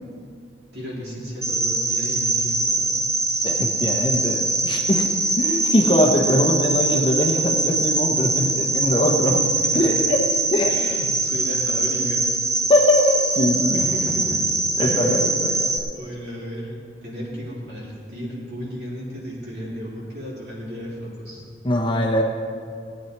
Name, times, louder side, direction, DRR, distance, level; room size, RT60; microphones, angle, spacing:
voice 1, 0.7-3.0 9.2-9.8 10.6-12.2 13.7-14.4 14.8-15.3 15.9-21.4, equal, 65° right, -6 dB, 3.8 m, -34 dB
Cricket, 1.4-15.8, right 3 dB, 15° right, 0.8 m, -23 dB
voice 2, 3.4-9.4 9.7-10.2 10.5-10.7 12.7-13.8 14.8-15.7 21.6-22.2, equal, 25° left, 0 dB, 1.1 m, -21 dB
18.0 x 9.0 x 4.7 m, 2.3 s
head